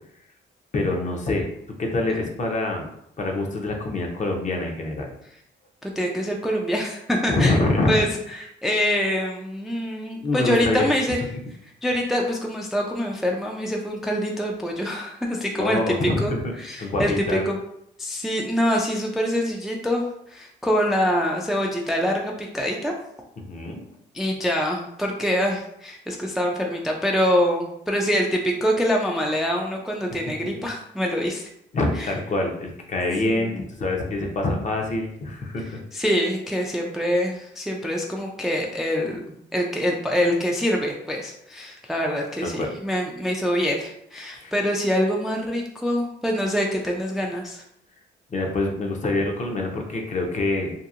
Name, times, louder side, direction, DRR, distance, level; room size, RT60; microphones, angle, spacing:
voice 1, 0.7-1.5 1.8-2.9 3.2-5.1 7.3-8.0 10.2-10.9 15.6-16.2 16.8-17.5 23.4-23.8 31.7-33.5 33.8-35.8 42.4-42.7 44.4-44.5 48.3-50.7, left 2 dB, 40° left, 2 dB, 0.6 m, -25 dB
voice 2, 5.8-7.6 7.9-11.3 11.8-16.3 16.6-17.6 18.0-22.9 24.1-31.5 32.0-32.1 33.2-33.6 35.9-39.2 39.5-47.6, equal, ahead, 0 dB, 0.3 m, -25 dB
2.8 x 2.6 x 2.4 m, 0.74 s
cardioid pair, 90°, 20 cm